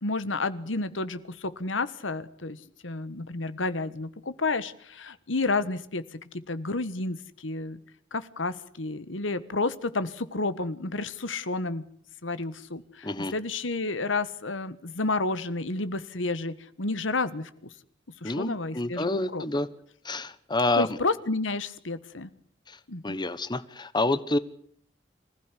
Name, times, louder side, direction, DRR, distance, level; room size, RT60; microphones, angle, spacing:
voice 1, 0.0-2.6 2.8-7.8 8.1-11.8 12.2-17.7 18.2-19.4 20.8-22.3 22.9-23.2, left 3 dB, 85° left, 14 dB, 1.4 m, -31 dB
voice 2, 13.0-13.3 18.2-19.7 20.0-20.9 22.7-24.4, left 2 dB, 25° left, 14 dB, 1.2 m, -28 dB
25.5 x 15.5 x 9.9 m, 0.63 s
head